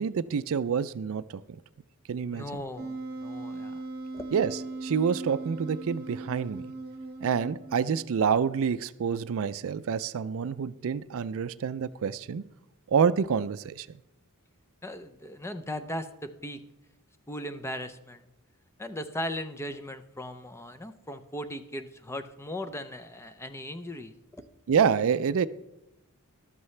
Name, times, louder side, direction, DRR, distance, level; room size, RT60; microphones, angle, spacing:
voice 1, 0.0-1.4 2.1-2.6 4.3-6.6 7.2-12.5 12.9-14.0 24.7-25.5, right 6 dB, 65° right, 0.4 m, -27 dB
voice 2, 2.3-3.8 4.1-4.3 14.8-16.6 17.3-18.2 18.8-24.4, left 1 dB, 10° left, 0.6 m, -38 dB
Wind instrument woodwind instrument, 2.8-8.2, right 2 dB, 45° right, 1.4 m, -39 dB
13.5 x 12.5 x 3.2 m
head